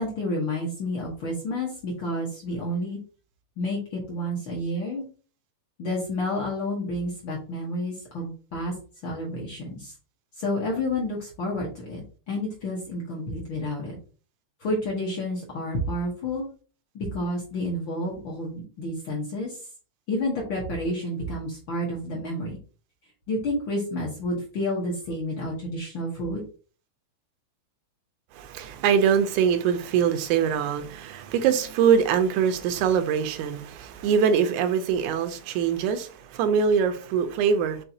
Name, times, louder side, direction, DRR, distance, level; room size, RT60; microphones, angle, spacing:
voice 1, 0.0-3.0 3.6-5.0 5.8-8.7 9.0-9.9 10.4-14.0 14.6-16.5 16.9-19.6 20.1-22.6 23.3-26.4, left 1 dB, 60° left, 1.4 m, -30 dB
voice 2, 28.3-37.8, right 7 dB, 85° right, 2.0 m, -23 dB
5.7 x 3.4 x 2.7 m
omnidirectional pair, 3.4 m